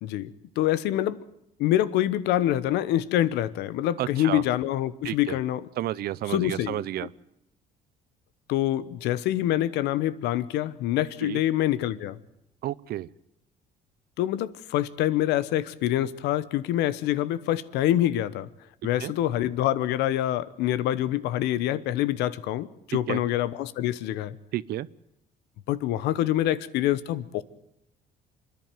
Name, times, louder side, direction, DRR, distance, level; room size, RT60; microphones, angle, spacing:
voice 1, 0.0-1.2 1.6-5.6 6.3-7.1 8.5-12.2 14.2-18.5 18.8-24.4 25.7-27.4, left 13 dB, 90° left, 16 dB, 1.0 m, -26 dB
voice 2, 4.0-4.4 5.0-5.4 5.8-7.1 11.2-11.4 12.6-13.1 19.0-19.1 23.1-23.2 24.5-24.9, right 14 dB, 70° right, 21 dB, 0.7 m, -31 dB
26.5 x 10.5 x 9.1 m, 0.81 s
cardioid pair, 110°, 17 cm